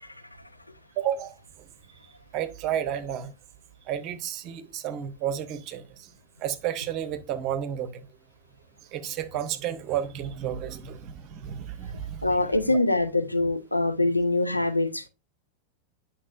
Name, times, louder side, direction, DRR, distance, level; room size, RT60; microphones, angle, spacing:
voice 1, 1.0-1.4 2.3-3.3 3.9-6.1 6.4-8.1 8.9-12.4, right 10 dB, 40° right, 0.8 m, -31 dB
voice 2, 12.2-15.1, left 2 dB, 85° left, 0.7 m, -24 dB
8.6 x 5.8 x 2.5 m
figure-of-eight pair, 90°, 0 cm